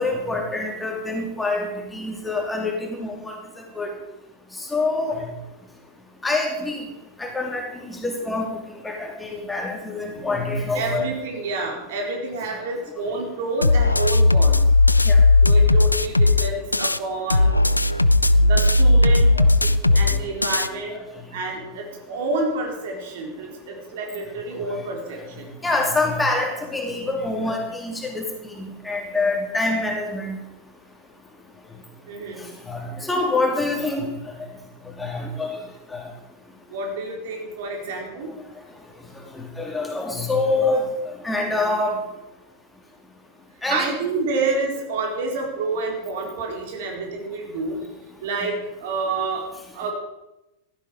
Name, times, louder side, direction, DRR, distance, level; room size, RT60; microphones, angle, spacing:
voice 1, 0.0-3.9 4.6-5.3 6.2-6.9 7.2-8.5 8.8-11.1 12.5-12.6 15.0-15.2 19.4-20.0 20.9-21.0 24.7-24.8 25.6-28.3 28.6-30.4 32.7-34.3 35.0-35.6 35.9-36.1 39.3-42.0 43.6-43.9, left 2 dB, 10° left, 1 dB, 3.0 m, -26 dB
voice 2, 10.7-14.6 15.4-17.6 18.4-19.3 19.9-21.0 21.3-25.5 32.0-32.5 36.7-38.3 43.7-47.8 48.2-49.5 49.7-49.9, right 3 dB, 55° right, 1 dB, 4.2 m, -28 dB
sound 1, 13.6-17.0 17.3-20.7, left 2 dB, 85° left, 0.5 m, -16 dB
16.0 x 13.5 x 5.1 m, 0.94 s
figure-of-eight pair, 90°, 0 cm